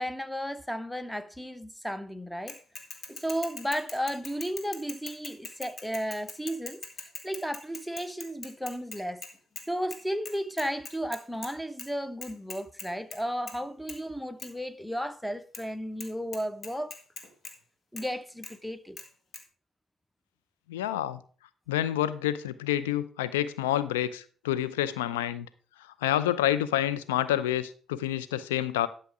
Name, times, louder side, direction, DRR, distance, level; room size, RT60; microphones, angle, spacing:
voice 1, 0.0-2.6 3.1-9.2 9.7-16.9 17.9-19.0, equal, 5° left, 0.8 m, -34 dB
Bicycle / Mechanisms, 2.5-9.6 9.9-10.0 10.2-11.5 11.8-11.9 12.2-13.2 13.5-13.6 13.9-14.0 14.4-14.5 15.5-15.6 16.0-16.1 16.3-17.5 18.0-18.1 18.4-18.5 19.0-19.1 19.3-19.4, left 4 dB, 50° left, 1.9 m, -41 dB
voice 2, 20.7-21.2 21.7-25.5 26.0-28.9, left 12 dB, 85° left, 0.5 m, -28 dB
11.5 x 5.8 x 4.9 m
hypercardioid pair, 50°, 0 cm